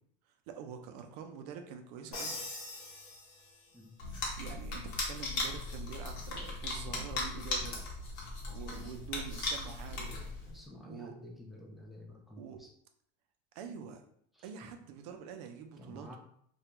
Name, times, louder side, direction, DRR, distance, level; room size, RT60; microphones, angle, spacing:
voice 1, 0.5-2.4 4.4-7.9 8.5-10.1 10.9-11.1 12.4-12.6 13.5-14.0 14.4-16.2, right 7 dB, 70° right, 5 dB, 0.5 m, -46 dB
Crash cymbal, 2.1-3.9, left 2 dB, 75° left, 1.2 m, -43 dB
sound 1, 4.0-10.6, left 2 dB, 55° left, 0.9 m, -38 dB
voice 2, 10.5-12.7 14.4-14.5 15.8-16.2, left 1 dB, ahead, -1 dB, 0.3 m, -51 dB
2.3 x 2.2 x 2.9 m, 0.67 s
supercardioid pair, 140°, 21 cm